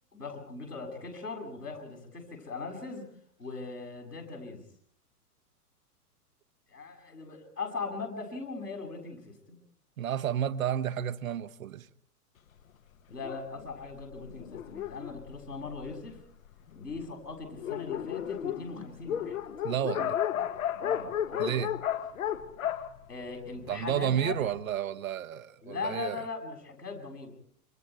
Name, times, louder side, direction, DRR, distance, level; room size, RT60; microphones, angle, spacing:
voice 1, 0.1-3.1 3.4-4.6 6.7-9.6 13.1-16.2 16.7-19.4 20.8-21.7 23.1-24.3 25.6-27.3, left 4 dB, 80° left, 7.8 m, -39 dB
voice 2, 10.0-11.9 19.6-20.2 21.4-21.7 23.7-26.2, right 9 dB, 60° right, 1.2 m, -31 dB
Dog, 13.2-16.2 16.9-17.0 17.3-17.4 17.6-24.0, left 10 dB, 60° left, 1.5 m, -34 dB
30.0 x 26.5 x 4.7 m
figure-of-eight pair, 100°, 46 cm